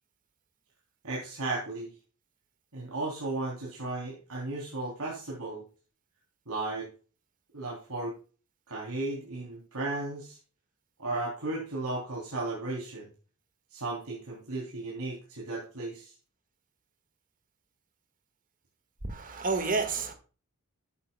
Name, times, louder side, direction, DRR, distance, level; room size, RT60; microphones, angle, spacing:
voice 1, 1.0-1.9 2.7-5.6 6.5-6.9 7.5-8.2 8.7-10.4 11.0-13.1 13.7-16.1, right 2 dB, 80° right, 3.3 m, -35 dB
voice 2, 19.1-20.1, right 4 dB, 40° right, 1.7 m, -30 dB
12.5 x 9.7 x 2.3 m
head